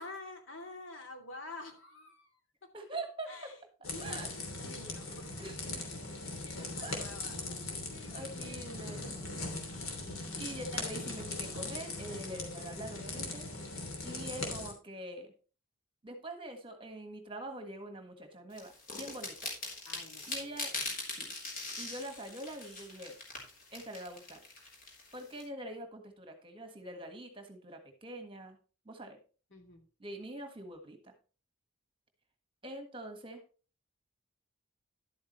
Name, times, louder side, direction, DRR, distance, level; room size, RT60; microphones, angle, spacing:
voice 1, 0.0-2.3 3.3-3.5 3.9-5.3 6.4-7.3 7.7-8.6 9.4-9.6 19.9-20.9 29.5-29.8, left 2 dB, 65° left, 3 dB, 2.5 m, -49 dB
voice 2, 2.7-3.5 4.0-4.3 5.4-5.8 6.6-7.1 8.1-9.2 9.5-9.6 10.4-13.5 14.0-15.3 16.0-19.5 20.3-20.8 21.2-21.3 21.8-23.2 23.7-24.4 25.1-28.6 28.8-29.2 30.0-31.1 32.6-33.4, right 1 dB, 25° right, 6 dB, 1.5 m, -44 dB
sound 1, 3.8-14.7, left 3 dB, 90° left, 3.1 m, -40 dB
sound 2, 18.6-25.4, left 2 dB, 40° left, 3.5 m, -41 dB
11.5 x 8.6 x 3.1 m, 0.36 s
head